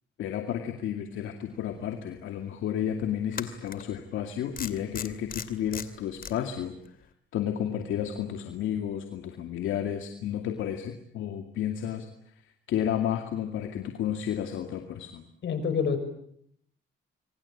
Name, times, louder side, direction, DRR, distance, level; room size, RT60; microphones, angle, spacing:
voice 1, 0.2-6.7 7.3-12.1 12.7-15.3, left 10 dB, 80° left, 5 dB, 2.4 m, -32 dB
sound 1, 1.9-2.0 3.3-3.8 4.6-6.3, left 7 dB, 45° left, 2.5 m, -37 dB
voice 2, 15.4-16.0, left 6 dB, 65° left, 10 dB, 6.0 m, -26 dB
26.5 x 24.5 x 8.6 m, 0.69 s
cardioid pair, 90°, 20 cm